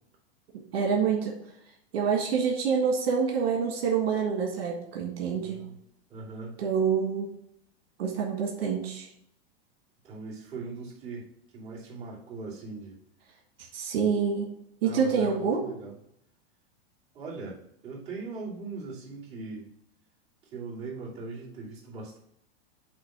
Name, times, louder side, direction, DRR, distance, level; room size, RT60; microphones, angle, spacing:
voice 1, 0.7-1.4 1.9-5.6 6.6-7.3 8.0-9.1 13.7-14.5 14.8-15.6, right 6 dB, 65° right, 0 dB, 1.7 m, -27 dB
voice 2, 5.3-5.8 6.1-6.5 10.0-13.0 14.8-15.9 17.1-19.7 20.5-22.2, right 3 dB, 20° right, -9 dB, 2.7 m, -40 dB
8.1 x 3.0 x 6.0 m, 0.73 s
supercardioid pair, 175°, 31 cm